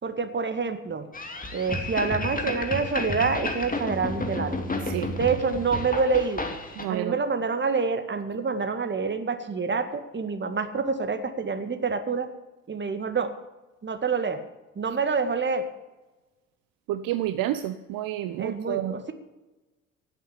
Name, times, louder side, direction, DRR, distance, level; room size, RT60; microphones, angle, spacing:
voice 1, 0.0-1.1 1.5-4.6 5.2-6.5 6.9-12.3 12.7-13.3 13.8-14.4 14.8-15.7 18.4-19.1, right 4 dB, 30° right, 8 dB, 2.0 m, -27 dB
sound 1, 1.1-6.9, left 2 dB, 20° left, 2.7 m, -31 dB
voice 2, 6.8-7.2 16.9-19.0, right 13 dB, 55° right, 10 dB, 0.9 m, -29 dB
17.0 x 8.0 x 8.4 m, 1.1 s
figure-of-eight pair, 50°, 39 cm